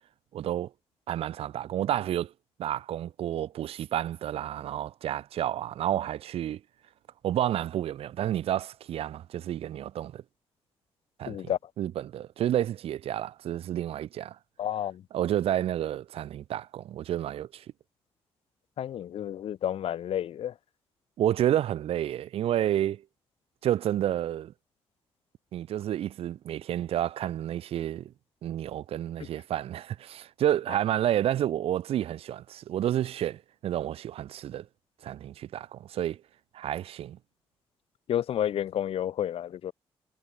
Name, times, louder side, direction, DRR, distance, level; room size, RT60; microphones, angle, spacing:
voice 1, 0.3-0.7 1.1-2.3 2.6-6.6 7.2-10.2 11.2-14.4 15.1-17.6 21.2-23.0 23.6-24.5 25.5-28.1 28.4-34.7 35.0-36.2 36.5-37.2, right 11 dB, 75° right, 0.8 m, -30 dB
voice 2, 11.3-11.6 14.6-15.0 18.8-20.5 38.1-39.7, left 10 dB, 70° left, 1.4 m, -30 dB
cardioid pair, 75°, 10 cm